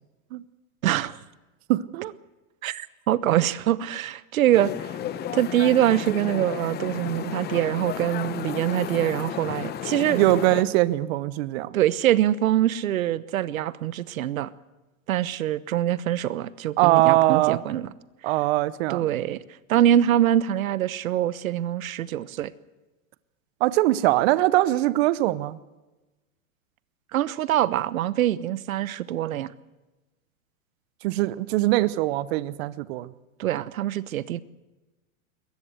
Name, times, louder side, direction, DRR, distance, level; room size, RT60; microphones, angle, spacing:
voice 1, 0.8-1.2 2.6-4.9 5.3-10.2 11.7-14.5 15.1-17.9 18.9-19.4 19.7-22.5 27.1-29.5 33.4-34.4, right 12 dB, 85° right, 18 dB, 1.1 m, -24 dB
voice 2, 1.7-2.1 10.1-11.8 16.8-17.6 18.2-19.0 23.6-25.6 31.0-33.1, right 17 dB, 50° right, 17 dB, 0.9 m, -22 dB
sound 1, 4.5-10.6, left 10 dB, 25° left, 1.2 m, -33 dB
22.0 x 18.5 x 7.9 m, 1.1 s
supercardioid pair, 145°, 40 cm